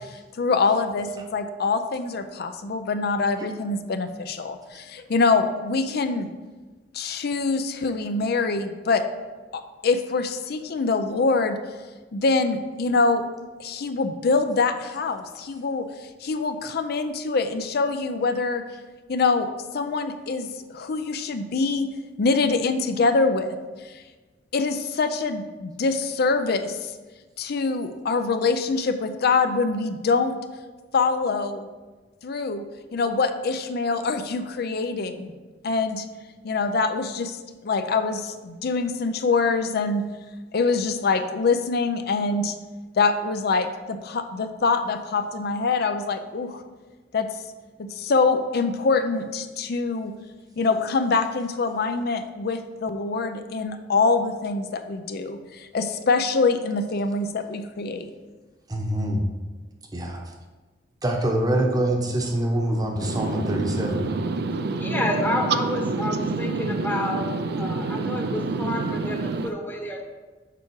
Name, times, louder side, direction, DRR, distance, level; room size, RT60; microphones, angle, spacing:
voice 1, 0.4-6.3 6.9-9.0 9.5-11.6 12.1-13.2 13.6-15.9 16.2-18.6 19.1-19.5 19.7-21.9 22.2-23.6 23.9-24.0 24.5-26.9 27.4-30.4 30.9-31.7 32.2-32.6 32.9-35.3 35.6-36.1 36.4-37.4 37.6-40.0 40.5-42.6 43.0-46.6 47.1-47.3 47.8-50.1 50.6-58.1, left 4 dB, 60° left, 8 dB, 0.5 m, -24 dB
voice 2, 58.7-59.2 59.9-60.2 61.0-64.1, right 1 dB, 20° right, 2 dB, 0.9 m, -25 dB
voice 3, 63.0-69.5, right 3 dB, 60° right, 9 dB, 0.5 m, -27 dB
voice 4, 64.8-66.5 66.8-67.2 67.6-69.2 69.4-70.0, left 1 dB, 10° left, 1 dB, 1.0 m, -29 dB
6.9 x 4.7 x 4.6 m, 1.3 s
head